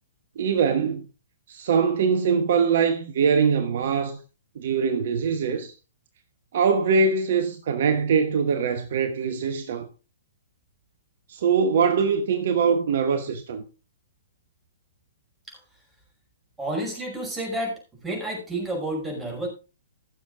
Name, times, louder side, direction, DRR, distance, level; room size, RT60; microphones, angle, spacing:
voice 1, 0.4-1.1 1.5-4.2 4.5-5.7 6.5-9.9 11.3-13.6, right 6 dB, 55° right, 1.2 m, -22 dB
voice 2, 16.6-19.5, right 1 dB, 10° right, 5.9 m, -30 dB
15.5 x 7.3 x 3.8 m
figure-of-eight pair, 120°, 0 cm